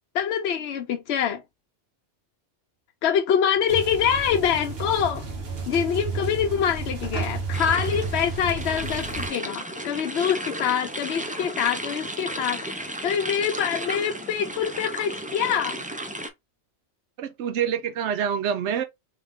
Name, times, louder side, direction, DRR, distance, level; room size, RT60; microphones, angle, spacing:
voice 1, 0.1-1.4 3.0-5.2 5.7-15.8, left 8 dB, 70° left, 0.9 m, -25 dB
sound 1, 3.7-9.3, right 4 dB, 60° right, 1.4 m, -32 dB
sound 2, 7.5-16.3, right 1 dB, 10° right, 0.4 m, -34 dB
voice 2, 17.2-18.8, right 8 dB, 80° right, 0.9 m, -26 dB
3.4 x 3.4 x 3.5 m
omnidirectional pair, 1.2 m